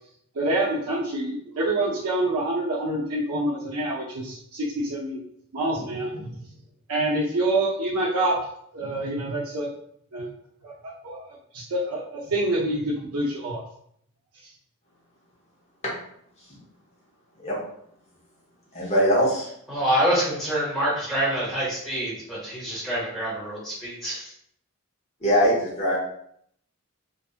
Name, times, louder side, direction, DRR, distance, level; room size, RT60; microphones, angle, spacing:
voice 1, 0.4-5.2 5.5-6.3 6.9-8.4 8.7-9.7 10.1-10.3 10.6-11.3 11.5-13.6, right 1 dB, 80° right, -5 dB, 0.6 m, -26 dB
voice 2, 18.7-19.5 25.2-26.0, equal, 30° left, -6 dB, 0.9 m, -21 dB
voice 3, 19.7-24.3, right 1 dB, ahead, -9 dB, 1.2 m, -26 dB
2.6 x 2.5 x 2.4 m, 0.68 s
head